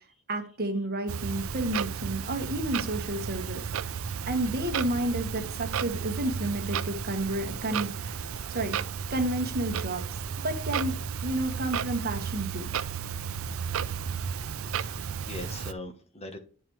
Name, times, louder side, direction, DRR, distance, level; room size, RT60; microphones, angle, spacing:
voice 1, 0.3-3.6 4.3-8.2 8.5-8.8 9.1-10.0 10.4-12.8, right 1 dB, 45° right, 4 dB, 1.3 m, -31 dB
Clock, 1.1-15.7, right 7 dB, 65° right, 0.5 m, -33 dB
voice 2, 14.7-16.4, left 2 dB, 30° left, 7 dB, 1.0 m, -41 dB
11.0 x 4.6 x 3.1 m, 0.41 s
head